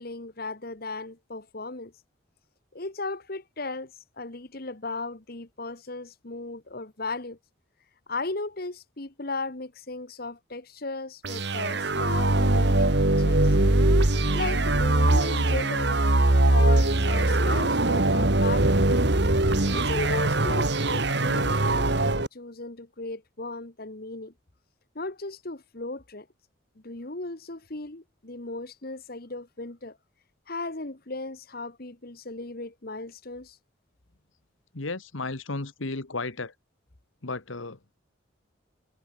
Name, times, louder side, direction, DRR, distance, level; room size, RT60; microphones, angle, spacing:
voice 1, 0.0-1.9 2.7-7.4 8.1-13.6 14.3-16.0 16.5-18.9 19.7-24.3 24.9-26.3 26.8-30.0 30.5-33.6, left 3 dB, 50° left, 1.6 m, -36 dB
sound 1, 11.2-22.3, right 2 dB, 60° right, 1.9 m, -22 dB
voice 2, 34.7-36.5 37.2-37.9, left 3 dB, 85° left, 1.7 m, -34 dB
head